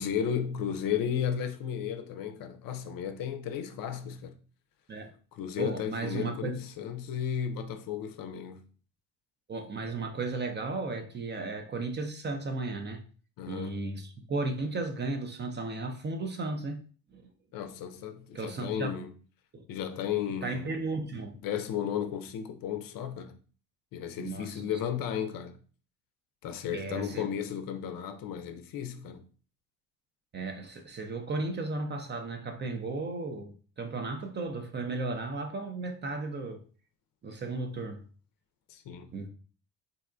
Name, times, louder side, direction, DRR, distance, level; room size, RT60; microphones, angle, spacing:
voice 1, 0.0-4.3 5.3-8.6 13.4-13.9 17.5-19.1 19.7-20.7 21.4-23.4 23.9-25.6 26.4-29.2 38.7-39.1, left 8 dB, 50° left, 0.6 m, -34 dB
voice 2, 5.6-6.6 9.5-13.0 13.5-16.8 17.1-17.3 18.3-18.9 19.5-19.6 20.4-21.4 24.2-24.7 26.7-27.3 30.3-36.6 37.2-38.1 39.1-39.3, right 3 dB, 25° right, 0.5 m, -35 dB
3.8 x 2.1 x 2.5 m
hypercardioid pair, 65°, 45 cm